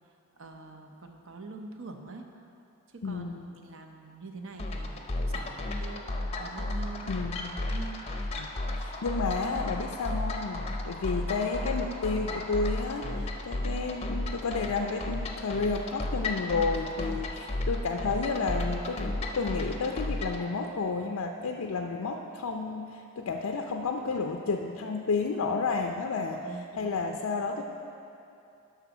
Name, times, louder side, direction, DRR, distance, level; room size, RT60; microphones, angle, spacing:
voice 1, 0.4-2.3 2.9-7.2 7.6-8.1 26.4-27.6, right 3 dB, 60° right, 4 dB, 0.7 m, -45 dB
voice 2, 3.0-3.5 7.1-7.5 8.3-26.4 26.8-27.6, left 4 dB, 80° left, 2 dB, 0.5 m, -31 dB
sound 1, 4.6-20.4, left 2 dB, 30° left, 0.6 m, -33 dB
11.5 x 3.9 x 6.0 m, 2.7 s
head